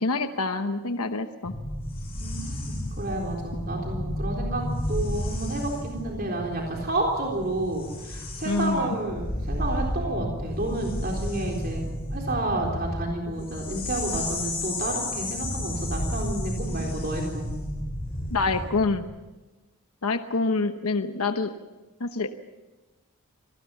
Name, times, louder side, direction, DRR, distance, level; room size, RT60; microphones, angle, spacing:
voice 1, 0.0-1.5 8.4-9.0 18.3-19.1 20.0-21.5 22.0-22.3, left 3 dB, 90° left, 8 dB, 1.0 m, -26 dB
sound 1, 1.4-19.0, left 1 dB, 25° left, 7.4 m, -32 dB
voice 2, 2.2-11.8 12.1-17.5, right 2 dB, 45° right, 0 dB, 3.9 m, -30 dB
26.0 x 19.0 x 7.1 m, 1.1 s
head